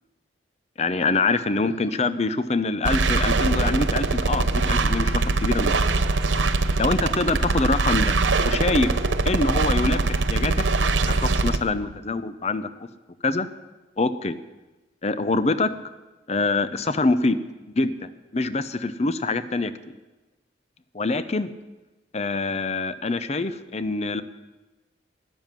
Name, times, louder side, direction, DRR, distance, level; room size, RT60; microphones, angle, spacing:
voice 1, 0.8-5.8 6.8-8.9 9.2-10.6 11.1-12.7 13.2-13.5 14.0-14.4 15.0-15.7 16.3-17.4 17.8-19.7 20.9-21.5 22.1-24.2, left 3 dB, 35° left, 13 dB, 0.6 m, -25 dB
sound 1, 2.9-11.6, right 3 dB, 85° right, 0.8 m, -22 dB
12.5 x 11.0 x 7.5 m, 1.1 s
head